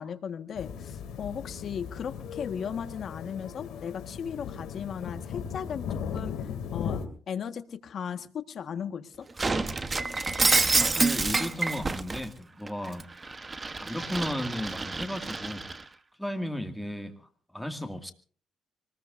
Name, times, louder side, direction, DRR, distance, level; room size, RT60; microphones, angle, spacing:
voice 1, 0.0-9.3, left 7 dB, 60° left, 8 dB, 1.5 m, -37 dB
sound 1, 0.5-7.1, left 7 dB, 85° left, 2.6 m, -37 dB
Shatter, 9.4-12.2 12.7-15.8, right 3 dB, 25° right, 1.1 m, -28 dB
voice 2, 10.7-13.0 13.8-15.7 16.2-17.1 17.5-18.1, left 1 dB, 5° left, 6 dB, 2.2 m, -34 dB
24.5 x 20.0 x 2.6 m, 0.43 s
cardioid pair, 90°, 0 cm